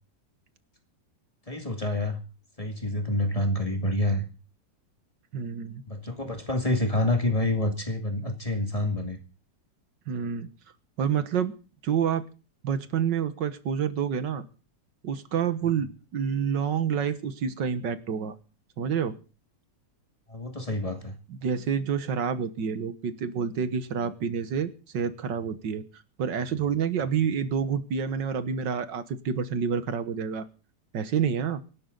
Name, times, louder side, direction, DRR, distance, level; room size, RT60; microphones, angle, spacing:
voice 1, 1.5-2.2 2.6-4.3 5.9-9.2 15.6-15.7 20.3-21.2, left 1 dB, 20° left, 5 dB, 2.1 m, -27 dB
voice 2, 5.3-5.8 10.1-10.5 11.0-11.5 11.8-12.2 12.6-14.5 15.0-18.4 18.8-19.2 21.3-25.8 26.2-30.5 30.9-31.6, right 7 dB, 75° right, 12 dB, 1.9 m, -28 dB
25.0 x 12.0 x 3.9 m, 0.35 s
omnidirectional pair, 1.9 m